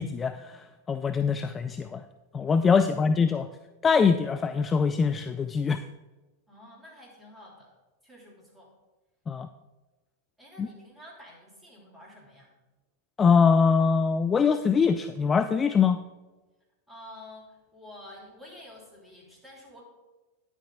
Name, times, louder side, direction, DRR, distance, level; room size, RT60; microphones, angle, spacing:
voice 1, 0.0-2.0 2.3-3.5 3.8-5.8 9.3-9.5 10.6-10.7 13.2-16.0, left 5 dB, 20° left, 10 dB, 0.3 m, -23 dB
voice 2, 2.8-3.5 6.5-7.7 8.0-8.7 10.4-12.6 16.9-19.8, left 1 dB, 10° right, -4 dB, 3.4 m, -49 dB
10.0 x 8.5 x 3.9 m, 1.2 s
figure-of-eight pair, 90°, 0 cm